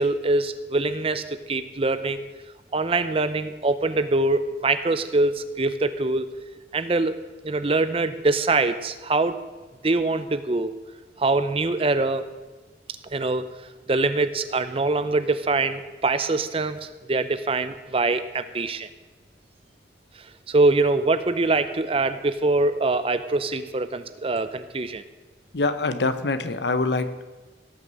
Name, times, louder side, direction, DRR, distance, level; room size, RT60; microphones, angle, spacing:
voice 1, 0.0-2.3 2.7-6.3 6.7-7.2 7.4-9.4 9.8-10.7 11.2-12.3 13.1-13.5 13.9-18.9 20.5-25.0, right 3 dB, 30° right, 12 dB, 0.6 m, -23 dB
voice 2, 25.5-27.2, left 3 dB, 70° left, 11 dB, 0.9 m, -24 dB
17.5 x 6.3 x 7.6 m, 1.2 s
head